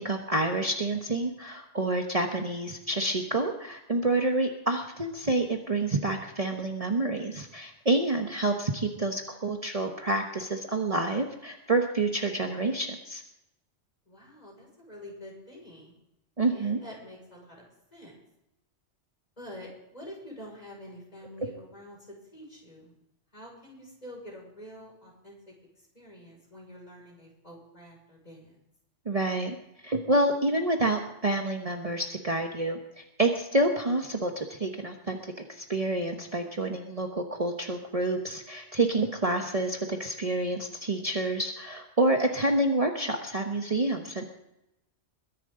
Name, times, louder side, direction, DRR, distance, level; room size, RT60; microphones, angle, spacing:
voice 1, 0.0-13.2 16.4-16.8 29.1-29.6 29.8-35.2 35.5-44.3, right 2 dB, 35° right, 3 dB, 1.1 m, -28 dB
voice 2, 14.1-15.9 16.5-17.6 17.9-18.2 19.4-22.9 23.3-25.5 25.9-28.6, equal, 35° left, -1 dB, 5.8 m, -47 dB
22.0 x 10.5 x 3.8 m, 0.89 s
omnidirectional pair, 1.2 m